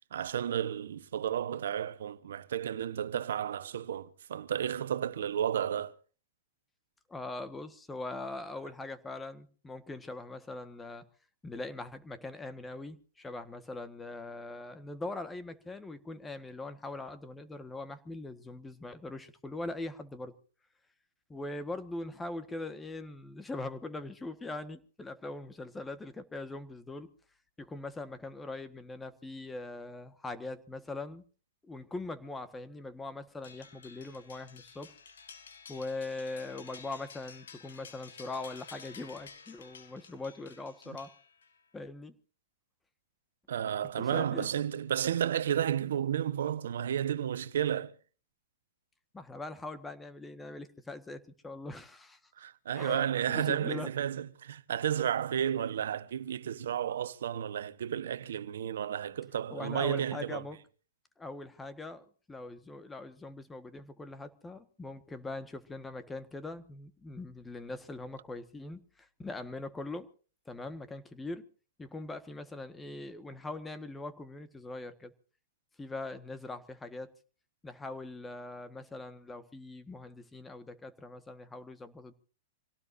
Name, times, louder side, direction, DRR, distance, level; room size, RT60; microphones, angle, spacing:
voice 1, 0.0-5.9 43.5-47.9 52.4-60.4, right 9 dB, 75° right, 1.2 m, -32 dB
voice 2, 7.1-11.1 11.4-20.3 21.3-27.1 27.6-31.2 31.7-34.9 35.7-41.1 41.7-42.1 44.0-44.5 49.1-52.2 52.8-53.9 59.5-60.6 61.2-70.1 70.4-71.4 71.8-75.1 75.8-77.1 77.6-82.1, left 2 dB, 10° left, 1.6 m, -41 dB
sound 1, 33.4-41.6, left 6 dB, 80° left, 3.5 m, -52 dB
26.5 x 17.5 x 2.7 m
hypercardioid pair, 120°, 0 cm